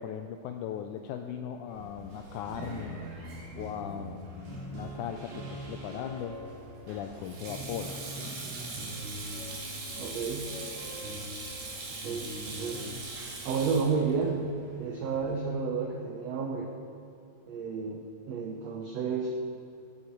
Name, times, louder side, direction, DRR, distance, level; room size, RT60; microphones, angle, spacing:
voice 1, 0.0-3.0 3.5-6.3 6.9-8.0, left 9 dB, 85° left, 6 dB, 1.7 m, -38 dB
Sink (filling or washing), 1.7-15.4, right 3 dB, 65° right, 3.6 m, -43 dB
sound 1, 2.3-12.9, equal, 45° right, 4.4 m, -43 dB
voice 2, 10.0-10.5 12.0-12.9 13.4-14.5 14.8-16.7 17.5-19.3, right 5 dB, 85° right, 2 dB, 1.4 m, -31 dB
14.0 x 9.6 x 4.5 m, 2.8 s
omnidirectional pair, 4.0 m